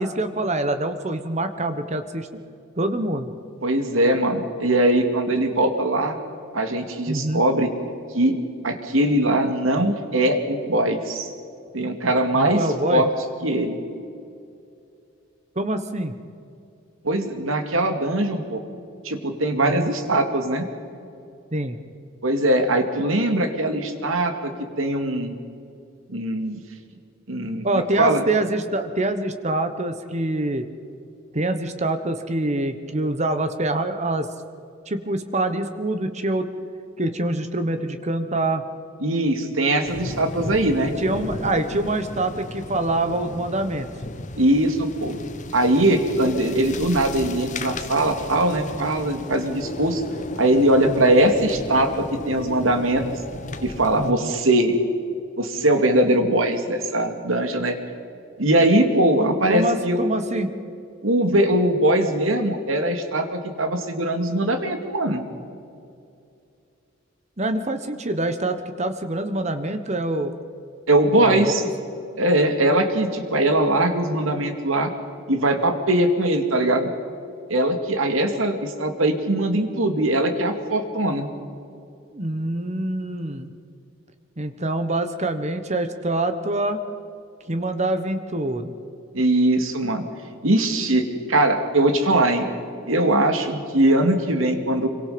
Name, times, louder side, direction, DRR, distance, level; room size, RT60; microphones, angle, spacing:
voice 1, 0.0-2.3 2.8-3.3 7.1-7.4 12.3-13.0 15.6-16.1 19.6-19.9 21.5-21.8 27.6-30.7 31.3-34.3 34.9-36.5 37.0-38.6 40.8-43.9 50.9-51.1 54.0-54.3 59.2-60.5 67.4-70.3 71.2-71.4 82.1-83.5 84.4-86.8 87.5-88.7, right 2 dB, 35° right, 9 dB, 1.2 m, -25 dB
voice 2, 3.6-6.2 6.5-7.7 8.1-8.4 8.6-11.3 11.7-13.1 13.4-13.8 17.0-18.6 19.0-20.7 22.2-24.3 24.8-25.4 26.1-26.6 27.3-28.2 39.0-40.9 44.4-45.2 45.5-50.0 50.4-53.0 53.6-54.8 55.4-57.8 58.4-60.0 61.0-65.3 70.9-71.6 72.2-74.9 75.3-76.9 77.5-81.3 89.1-90.0 90.4-92.5 92.9-94.9, right 1 dB, 90° right, 6 dB, 2.5 m, -21 dB
sound 1, 39.8-54.1, left 2 dB, 40° left, 1.1 m, -35 dB
26.5 x 23.5 x 5.2 m, 2.5 s
head